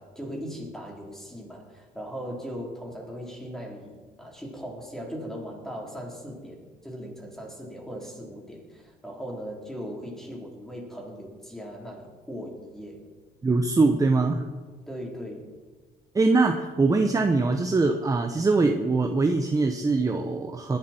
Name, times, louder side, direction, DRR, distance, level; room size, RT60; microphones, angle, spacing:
voice 1, 0.0-13.0 14.9-15.5, equal, ahead, -1 dB, 4.0 m, -39 dB
voice 2, 13.4-14.4 16.1-20.8, right 3 dB, 20° right, 5 dB, 1.1 m, -22 dB
19.5 x 11.5 x 4.5 m, 1.4 s
cardioid pair, 110°, 17 cm